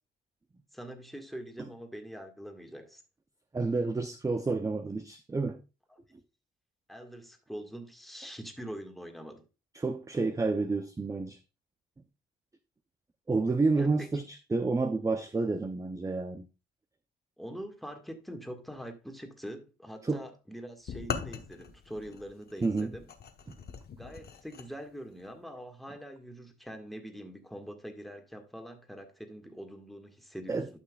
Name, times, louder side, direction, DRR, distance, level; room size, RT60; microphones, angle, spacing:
voice 1, 0.7-3.0 6.9-9.4 13.8-14.1 17.4-23.1 24.0-30.6, equal, ahead, 1.7 m, -44 dB
voice 2, 3.5-5.6 9.7-11.4 13.3-16.4 20.0-20.2 22.6-22.9 30.5-30.7, right 3 dB, 15° right, 0.6 m, -29 dB
sound 1, 20.9-24.7, left 7 dB, 50° left, 1.1 m, -40 dB
12.0 x 5.8 x 2.3 m
cardioid pair, 90°, 20 cm